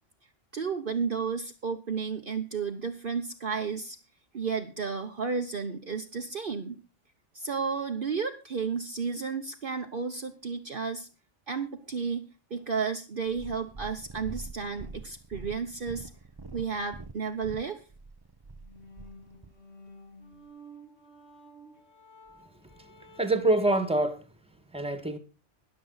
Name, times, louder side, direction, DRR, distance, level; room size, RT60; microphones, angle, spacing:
voice 1, 0.5-4.0 4.3-6.8 7.3-11.1 11.5-16.1 16.5-17.8, right 5 dB, 50° right, 1.1 m, -32 dB
Purr, 13.3-19.6 20.3-20.4, right 3 dB, 25° right, 0.6 m, -45 dB
sound 1, 18.5-23.6, equal, 60° left, 3.3 m, -52 dB
voice 2, 23.1-24.3 24.7-25.2, right 2 dB, 5° right, 1.5 m, -25 dB
21.5 x 7.4 x 3.9 m
omnidirectional pair, 1.3 m